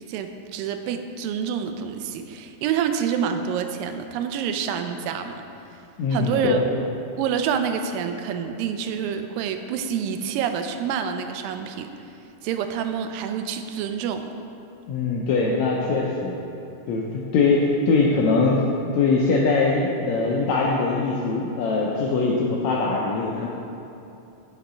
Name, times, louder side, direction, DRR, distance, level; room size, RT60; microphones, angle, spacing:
voice 1, 0.1-5.4 6.1-6.6 7.2-11.9 12.4-14.3, right 7 dB, 90° right, 7 dB, 2.3 m, -27 dB
voice 2, 6.0-6.6 14.9-16.4 16.9-18.6 18.9-23.5, left 4 dB, 80° left, -3 dB, 1.6 m, -22 dB
8.1 x 5.8 x 5.0 m, 2.7 s
omnidirectional pair, 3.9 m